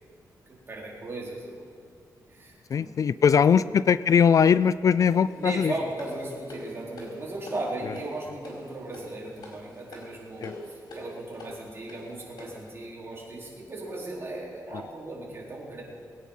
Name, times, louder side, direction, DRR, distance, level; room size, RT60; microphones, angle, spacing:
voice 1, 0.5-1.7 2.3-2.9 3.5-3.7 5.4-15.8, right 2 dB, 35° right, -4 dB, 4.4 m, -37 dB
voice 2, 2.7-5.7 10.4-10.5 14.7-14.8, left 7 dB, 55° left, 17 dB, 0.3 m, -21 dB
sound 1, 5.0-12.7, left 1 dB, 85° left, 4.6 m, -45 dB
21.5 x 9.7 x 5.7 m, 2.4 s
cardioid pair, 95°, 7 cm